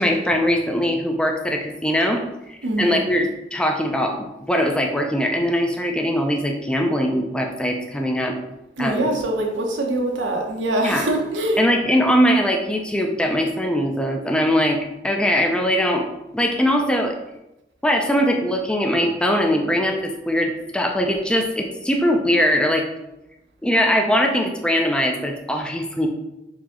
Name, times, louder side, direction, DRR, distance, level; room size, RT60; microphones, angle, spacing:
voice 1, 0.0-2.2 2.5-8.4 8.8-9.1 10.8-11.1 11.6-14.8 15.0-16.1 16.3-17.2 17.8-22.8 23.6-26.1, equal, 5° left, 2 dB, 0.4 m, -21 dB
voice 2, 2.6-3.0 8.8-11.7, right 1 dB, 85° right, 0 dB, 0.9 m, -23 dB
4.9 x 2.8 x 3.6 m, 0.92 s
head